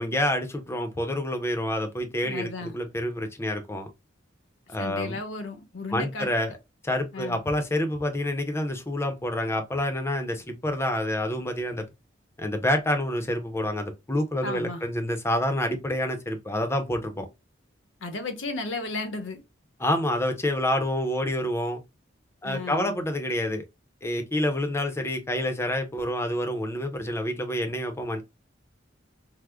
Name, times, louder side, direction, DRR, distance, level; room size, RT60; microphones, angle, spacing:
voice 1, 0.0-3.9 4.7-5.2 5.9-6.5 6.8-11.9 12.4-17.3 19.8-21.8 22.4-23.6 24.0-28.2, left 1 dB, 15° left, 0.5 m, -28 dB
voice 2, 2.2-2.7 4.8-6.3 7.1-7.4 14.4-14.8 18.0-19.4 22.4-23.0, left 3 dB, 85° left, 0.9 m, -34 dB
4.7 x 2.0 x 2.2 m
head